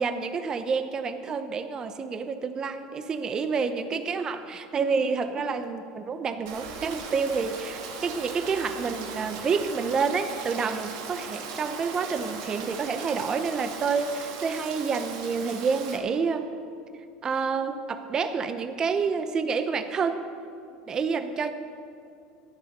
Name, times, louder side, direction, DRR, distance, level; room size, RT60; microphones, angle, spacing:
voice 1, 0.0-16.5 17.2-20.2 20.9-21.5, right 5 dB, 30° right, 8 dB, 0.9 m, -28 dB
Rain, 6.5-16.0, right 5 dB, 80° right, 2.3 m, -38 dB
14.0 x 11.0 x 6.7 m, 2.4 s
supercardioid pair, 105°, 2 cm